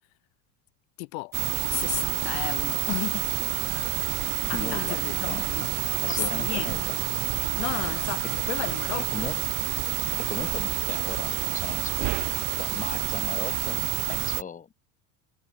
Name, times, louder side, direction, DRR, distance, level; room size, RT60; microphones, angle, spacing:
voice 1, 1.0-1.3 1.7-3.3 4.5-5.7 6.1-6.8 7.6-9.3, left 34 dB, 75° left, 0.6 m, -33 dB
sound 1, 1.3-14.4, right 20 dB, 50° right, 0.6 m, -28 dB
sound 2, 3.7-10.3, right 6 dB, 25° right, 4.0 m, -49 dB
voice 2, 4.5-5.4 6.0-6.9 8.2-8.3 9.1-9.4 10.2-12.1 12.6-13.8 14.1-14.7, left 6 dB, 20° left, 1.0 m, -37 dB
supercardioid pair, 100°, 41 cm